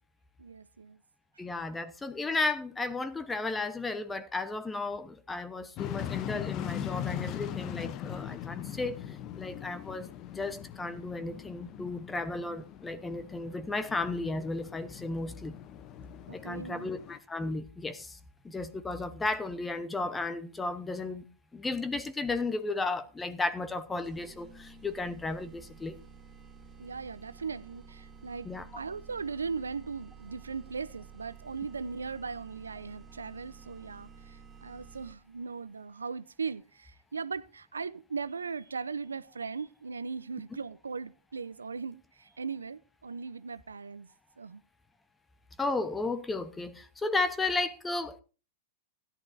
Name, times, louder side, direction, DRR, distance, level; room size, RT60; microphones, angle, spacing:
voice 1, 0.4-1.0 16.3-16.9 26.8-44.1 44.4-44.6, right 5 dB, 85° right, 0.6 m, -38 dB
voice 2, 1.4-15.5 16.3-18.2 18.4-21.3 21.5-26.0 28.4-28.7 45.6-48.2, left 3 dB, 10° left, 1.0 m, -34 dB
sound 1, 5.8-17.2, left 10 dB, 40° left, 0.8 m, -40 dB
sound 2, 24.0-35.4, right 6 dB, 20° right, 3.0 m, -52 dB
16.5 x 11.0 x 2.7 m
hypercardioid pair, 105°, 0 cm